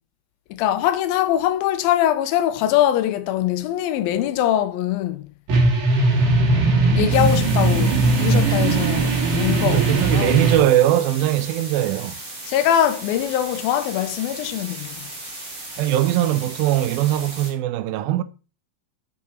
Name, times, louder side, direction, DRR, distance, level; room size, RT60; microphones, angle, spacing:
voice 1, 0.5-5.3 6.9-10.4 12.5-15.0, left 11 dB, 90° left, 2.5 m, -22 dB
sound 1, 5.5-10.6, right 2 dB, 60° right, 3.4 m, -19 dB
sound 2, 7.1-17.5, right 2 dB, 25° right, 2.4 m, -36 dB
voice 2, 9.6-12.2 15.8-18.2, right 13 dB, 85° right, 2.4 m, -20 dB
7.4 x 7.4 x 4.2 m
omnidirectional pair, 4.2 m